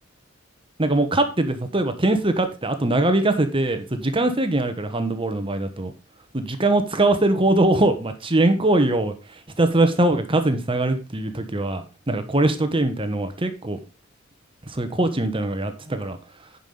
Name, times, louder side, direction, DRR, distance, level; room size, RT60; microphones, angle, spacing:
voice 1, 0.8-5.9 6.3-9.1 9.6-13.8 14.7-16.2, right 2 dB, 25° right, 8 dB, 1.2 m, -22 dB
10.0 x 5.6 x 5.0 m, 0.31 s
head